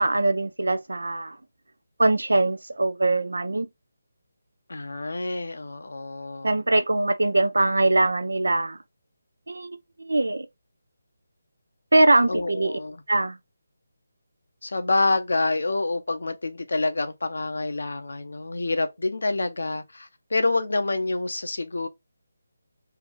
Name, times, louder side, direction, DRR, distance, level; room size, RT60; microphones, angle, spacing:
voice 1, 0.0-1.4 2.0-3.7 6.4-8.8 9.5-9.7 10.1-10.5 11.9-12.8 13.1-13.4, right 2 dB, 85° right, 0.5 m, -22 dB
voice 2, 4.7-6.5 12.3-13.0 14.6-21.9, left 2 dB, 75° left, 0.8 m, -27 dB
3.4 x 2.5 x 3.5 m
figure-of-eight pair, 160°, 0 cm